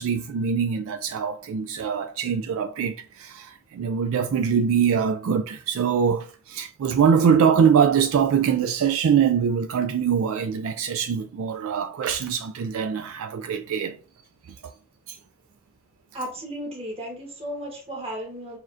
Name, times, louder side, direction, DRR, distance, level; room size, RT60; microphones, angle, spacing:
voice 1, 0.0-14.0 14.6-14.7 15.1-15.2, right 7 dB, 65° right, 0.3 m, -23 dB
voice 2, 16.1-18.6, equal, 25° right, 1.4 m, -34 dB
6.2 x 2.5 x 2.5 m
head